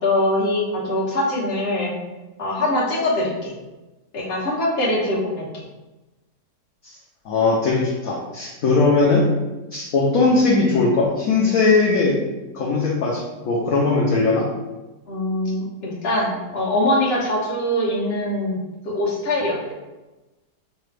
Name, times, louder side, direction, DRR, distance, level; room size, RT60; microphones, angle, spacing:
voice 1, 0.0-1.9 2.4-3.5 4.1-5.6 15.1-18.6 18.8-19.7, left 1 dB, 40° left, -5 dB, 1.2 m, -23 dB
voice 2, 7.2-9.2 9.7-12.2 12.5-14.4, left 3 dB, 60° left, -4 dB, 1.0 m, -19 dB
5.8 x 2.3 x 3.3 m, 1.1 s
omnidirectional pair, 1.9 m